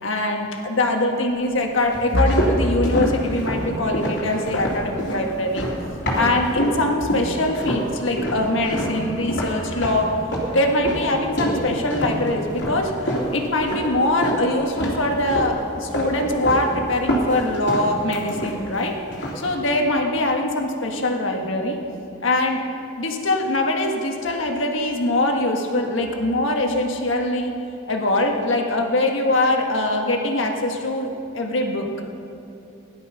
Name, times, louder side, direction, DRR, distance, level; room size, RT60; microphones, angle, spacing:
voice 1, 0.0-5.7 6.1-10.1 10.5-12.9 13.3-18.9 19.3-21.8 22.2-22.6 23.0-27.5 27.9-31.1 31.3-31.9, left 1 dB, 75° left, 2 dB, 1.6 m, -22 dB
sound 1, 1.9-6.8 7.1-7.9 8.2-14.4 14.7-15.6 15.9-16.7 16.9-18.8 19.1-19.5, right 1 dB, 60° left, 3.2 m, -26 dB
17.0 x 11.0 x 5.8 m, 2.8 s
head